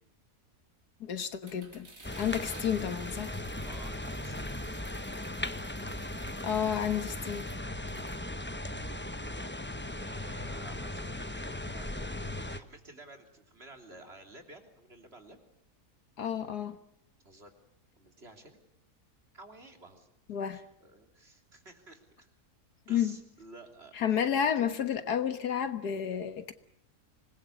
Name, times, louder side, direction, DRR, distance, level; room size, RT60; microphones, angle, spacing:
voice 1, 1.0-1.9 2.2-3.4 6.4-7.5 16.2-16.8 20.3-20.6 22.9-23.2 24.0-26.5, left 8 dB, 80° left, 1.9 m, -31 dB
sound 1, 1.4-8.2, right 2 dB, 55° right, 4.4 m, -54 dB
sound 2, 2.0-12.6, left 1 dB, 10° left, 0.7 m, -38 dB
voice 2, 3.6-4.5 9.7-15.4 17.2-17.5 18.0-18.6 19.3-20.1 20.5-22.3 22.9-24.3, right 2 dB, 40° right, 3.5 m, -52 dB
25.5 x 20.5 x 8.5 m
omnidirectional pair, 1.7 m